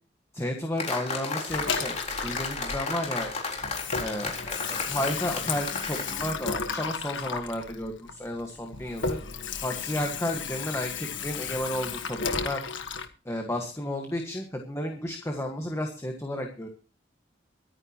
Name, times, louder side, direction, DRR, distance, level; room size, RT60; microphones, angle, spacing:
voice 1, 0.3-3.3 4.0-9.2 9.6-12.6 13.2-16.7, left 1 dB, 15° left, 3 dB, 1.6 m, -32 dB
sound 1, 0.8-6.2, left 4 dB, 40° left, 4.1 m, -33 dB
Water tap faucet / Sink (filling or washing), 1.5-3.3 3.6-13.1, left 5 dB, 75° left, 1.6 m, -34 dB
23.5 x 9.9 x 3.0 m, 0.35 s
head